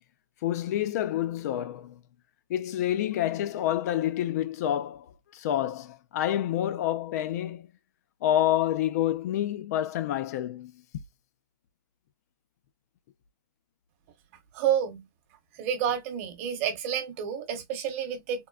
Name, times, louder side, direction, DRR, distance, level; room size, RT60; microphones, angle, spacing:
voice 1, 0.4-2.0 2.5-7.7 8.2-10.8, left 12 dB, 50° left, 0.4 m, -28 dB
voice 2, 14.5-15.1 15.5-18.5, right 8 dB, 40° right, 1.0 m, -29 dB
3.7 x 2.1 x 2.3 m
supercardioid pair, 165°, 11 cm